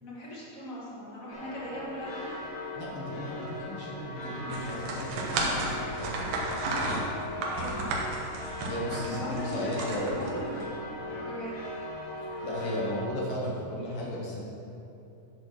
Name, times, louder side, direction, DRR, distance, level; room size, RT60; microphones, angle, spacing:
voice 1, 0.0-2.4 5.3-5.7 7.4-8.1 9.1-11.5, left 1 dB, 40° left, -6 dB, 1.2 m, -40 dB
sound 1, 1.3-13.1, left 1 dB, 75° left, 1.1 m, -39 dB
voice 2, 2.8-6.1 8.7-10.3 12.4-14.4, left 1 dB, 60° left, -4 dB, 1.5 m, -35 dB
sound 2, 4.5-10.6, right 2 dB, 85° right, 2.9 m, -33 dB
10.5 x 4.1 x 6.3 m, 2.9 s
omnidirectional pair, 4.1 m